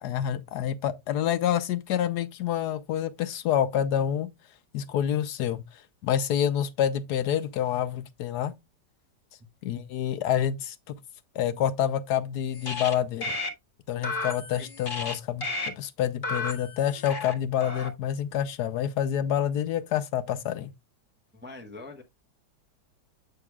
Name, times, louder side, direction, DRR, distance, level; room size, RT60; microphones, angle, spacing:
voice 1, 0.0-4.3 4.7-5.6 6.0-8.5 9.6-11.0 11.4-13.4 13.9-20.7, left 10 dB, 70° left, 1.1 m, -27 dB
sound 1, 12.5-12.9 13.2-13.5 14.0-15.1 15.4-15.7 16.2-17.3 17.6-17.9, left 3 dB, 30° left, 1.4 m, -33 dB
voice 2, 21.3-22.0, left 3 dB, 10° right, 0.6 m, -43 dB
7.7 x 6.6 x 2.2 m
omnidirectional pair, 1.9 m